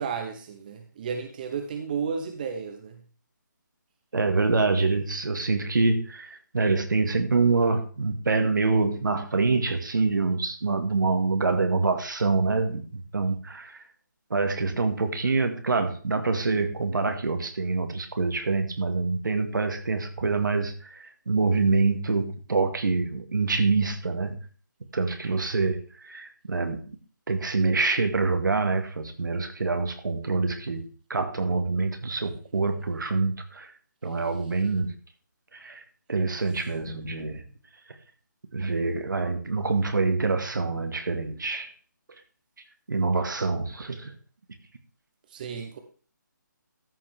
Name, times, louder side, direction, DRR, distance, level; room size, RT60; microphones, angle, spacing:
voice 1, 0.0-3.0 45.3-45.8, right 6 dB, 25° right, 0.8 m, -33 dB
voice 2, 4.1-13.8 14.3-24.4 24.9-25.8 26.0-27.0 27.3-33.7 34.0-34.9 35.5-35.8 36.1-37.4 38.5-41.7 42.9-44.1, right 3 dB, 75° right, 1.9 m, -26 dB
13.5 x 5.8 x 3.6 m
hypercardioid pair, 165°, 10 cm